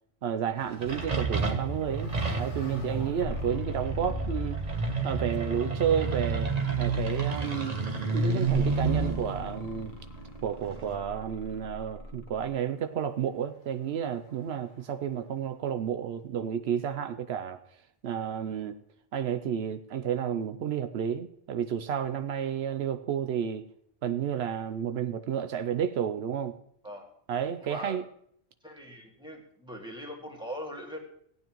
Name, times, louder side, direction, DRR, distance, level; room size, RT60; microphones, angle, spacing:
voice 1, 0.2-4.6 5.0-7.8 8.1-9.9 10.4-17.6 18.0-18.8 19.1-23.6 24.0-26.5 27.3-28.0, right 8 dB, 75° right, 0.9 m, -31 dB
sound 1, 0.6-11.0, right 4 dB, 40° right, 1.2 m, -31 dB
sound 2, 1.5-4.9 5.3-5.9 8.4-12.5, left 1 dB, 50° left, 1.3 m, -39 dB
voice 2, 2.8-3.2 26.8-27.1 27.6-28.0 28.6-31.0, equal, 5° right, 2.0 m, -41 dB
16.5 x 9.2 x 3.0 m
omnidirectional pair, 1.1 m